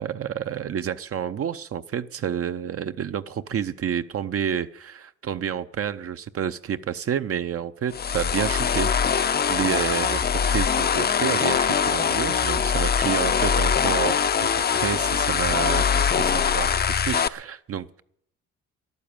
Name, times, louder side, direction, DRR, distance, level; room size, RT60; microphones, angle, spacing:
voice 1, 0.0-16.7 17.0-18.0, right 8 dB, 50° right, 9 dB, 0.6 m, -29 dB
sound 1, 7.9-17.3, left 7 dB, 30° left, 0.6 m, -22 dB
14.0 x 11.0 x 8.9 m, 0.71 s
cardioid pair, 90°, 30 cm